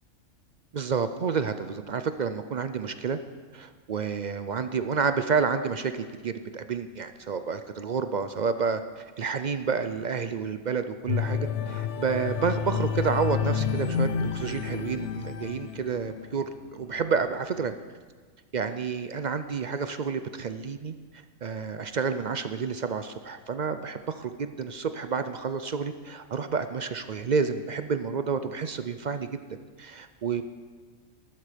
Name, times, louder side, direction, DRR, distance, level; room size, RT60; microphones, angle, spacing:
voice 1, 0.7-3.2 3.5-17.7 18.5-20.9 21.4-29.3 29.8-30.4, right 5 dB, 55° right, 10 dB, 0.5 m, -29 dB
sound 1, 11.1-16.3 16.8-17.0, left 7 dB, 65° left, 0.9 m, -30 dB
14.5 x 12.0 x 5.1 m, 1.5 s
omnidirectional pair, 1.4 m